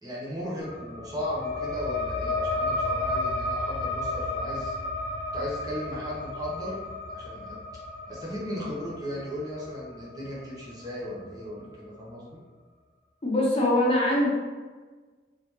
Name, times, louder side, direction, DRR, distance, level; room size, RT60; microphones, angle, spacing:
voice 1, 0.0-4.7 5.3-6.8 7.1-7.6 8.1-12.4, equal, 20° right, -6 dB, 1.1 m, -36 dB
sound 1, 0.6-11.7, left 2 dB, 65° left, 0.7 m, -33 dB
voice 2, 13.2-14.3, left 1 dB, 35° left, -4 dB, 0.8 m, -22 dB
3.8 x 3.4 x 3.0 m, 1.4 s
head